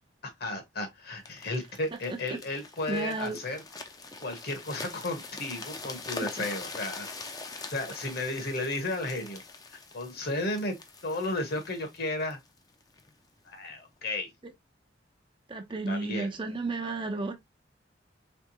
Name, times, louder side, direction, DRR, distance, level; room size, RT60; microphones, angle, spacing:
voice 1, 0.4-3.6 4.2-7.1 7.7-9.4 9.9-10.8 11.0-12.4 13.4-14.3 15.9-16.3, left 2 dB, 55° left, 1.3 m, -33 dB
sound 1, 1.3-13.1 13.7-13.9, left 3 dB, 20° left, 0.5 m, -43 dB
voice 2, 2.9-3.4 15.5-17.3, right 3 dB, 25° right, 0.5 m, -32 dB
3.5 x 3.4 x 2.8 m
head